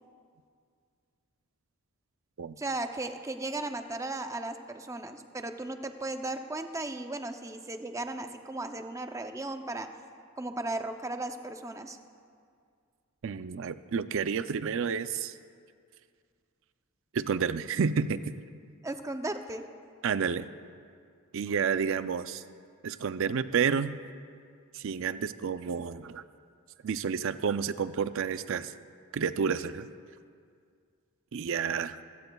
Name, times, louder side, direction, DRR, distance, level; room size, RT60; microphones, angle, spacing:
voice 1, 2.6-9.9 10.4-12.0 18.8-19.6, right 2 dB, 15° right, 6 dB, 0.6 m, -36 dB
voice 2, 13.2-15.4 17.1-18.3 20.0-20.5 21.3-22.4 22.8-23.9 24.7-26.2 26.8-28.7 29.1-29.9 31.3-32.0, right 6 dB, 60° right, 13 dB, 0.4 m, -30 dB
20.5 x 16.0 x 2.3 m, 2.2 s
head